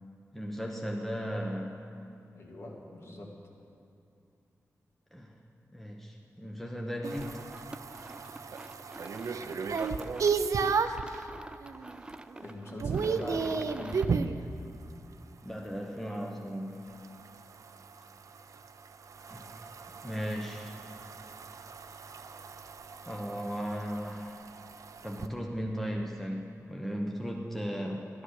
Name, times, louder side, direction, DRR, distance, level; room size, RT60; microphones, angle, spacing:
voice 1, 0.3-1.8 5.1-5.3 5.7-7.4 15.4-16.8 19.3-19.6 20.0-20.7 23.0-24.4 25.0-28.1, equal, 5° left, 0 dB, 0.9 m, -36 dB
voice 2, 2.3-3.4 12.4-14.1, left 1 dB, 50° left, -1 dB, 2.1 m, -42 dB
sound 1, 7.0-14.3, right 2 dB, 15° right, 0.3 m, -48 dB
sound 2, 7.0-11.1 11.6-12.0 12.3-14.4 16.9-25.3, right 5 dB, 70° right, 0.6 m, -34 dB
14.5 x 11.5 x 6.5 m, 2.6 s
wide cardioid pair, 155°, 6 cm